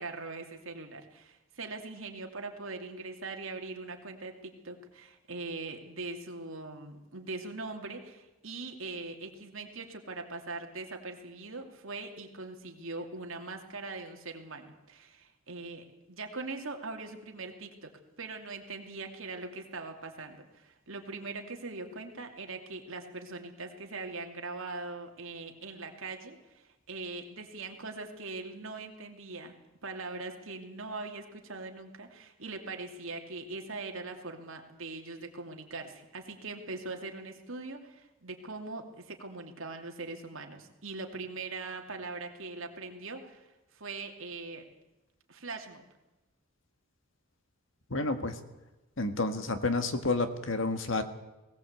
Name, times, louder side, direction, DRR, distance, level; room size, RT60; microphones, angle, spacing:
voice 1, 0.0-17.9 18.2-29.6 29.8-44.6 45.3-45.8, right 3 dB, 70° right, 3 dB, 2.7 m, -41 dB
voice 2, 47.9-48.4 49.0-51.0, left 3 dB, 65° left, 8 dB, 1.7 m, -30 dB
20.0 x 18.0 x 8.2 m, 1.1 s
head